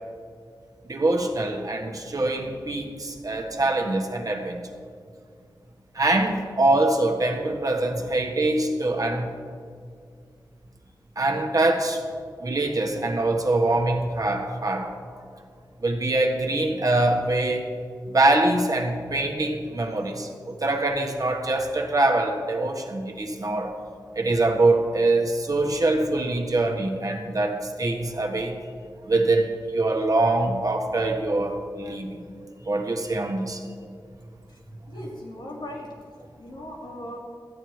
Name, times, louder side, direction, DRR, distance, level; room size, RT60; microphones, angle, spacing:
voice 1, 0.9-4.7 5.9-9.3 11.2-12.0 12.4-14.9 15.8-17.6 18.1-23.7 24.1-28.6 29.1-32.2 32.6-33.7, right 2 dB, 50° right, 3 dB, 1.3 m, -24 dB
voice 2, 34.9-35.9 36.4-37.2, left 1 dB, 85° left, -3 dB, 2.6 m, -38 dB
13.5 x 8.9 x 4.7 m, 2.2 s
cardioid pair, 55°, 8 cm